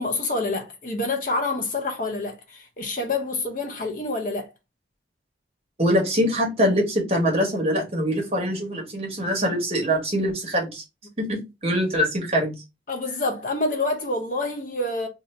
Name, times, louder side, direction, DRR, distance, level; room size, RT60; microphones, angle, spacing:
voice 1, 0.0-4.5 12.9-15.1, left 2 dB, 45° left, 0.7 m, -27 dB
voice 2, 5.8-10.8 11.2-12.6, equal, 35° right, 1.2 m, -23 dB
2.7 x 2.7 x 4.3 m
head